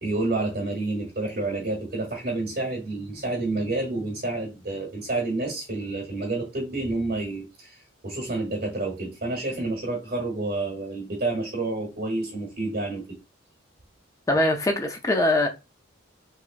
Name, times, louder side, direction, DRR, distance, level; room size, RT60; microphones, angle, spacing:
voice 1, 0.0-13.0, right 2 dB, 45° right, 1.0 m, -29 dB
voice 2, 14.3-15.5, left 1 dB, 15° left, 0.4 m, -22 dB
3.5 x 3.1 x 2.4 m
head